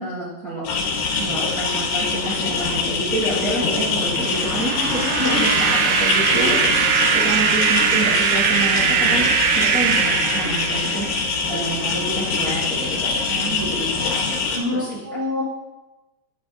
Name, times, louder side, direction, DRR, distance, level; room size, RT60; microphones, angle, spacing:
voice 1, 0.0-15.0, right 1 dB, 65° right, -7 dB, 0.8 m, -28 dB
sound 1, 0.6-14.6, left 4 dB, 70° left, 2.3 m, -24 dB
sound 2, 4.2-11.2, right 7 dB, 90° right, 1.6 m, -21 dB
voice 2, 14.5-15.4, left 2 dB, 50° left, -7 dB, 0.7 m, -25 dB
7.1 x 5.2 x 4.5 m, 1.0 s
omnidirectional pair, 3.8 m